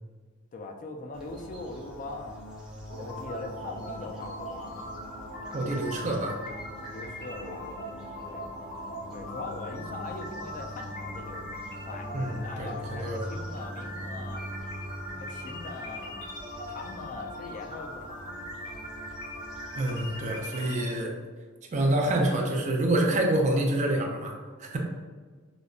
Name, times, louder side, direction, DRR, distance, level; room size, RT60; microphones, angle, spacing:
voice 1, 0.5-2.4 3.0-4.8 6.9-7.8 8.3-8.5 9.1-11.4 11.8-14.4 15.1-16.3 16.7-18.5, left 3 dB, 40° left, 3 dB, 0.3 m, -41 dB
sound 1, 1.1-20.5, equal, 5° right, 0.8 m, -44 dB
sound 2, 2.9-20.9, equal, 60° left, 1.3 m, -40 dB
voice 2, 5.5-6.4 12.1-13.2 19.7-21.2 21.7-24.8, right 1 dB, 35° right, 1 dB, 0.5 m, -27 dB
5.0 x 2.1 x 2.3 m, 1.5 s
head